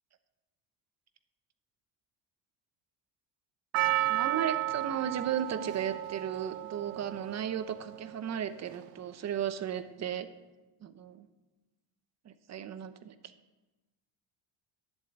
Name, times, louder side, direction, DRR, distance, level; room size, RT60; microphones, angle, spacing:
Percussion, 3.7-8.1 8.7-8.8, right 14 dB, 80° right, 0.8 m, -33 dB
voice 1, 4.1-10.3 10.8-11.3 12.3-13.1, right 9 dB, 35° right, 11 dB, 0.8 m, -35 dB
11.0 x 7.6 x 8.0 m, 1.1 s
cardioid pair, 135°, 49 cm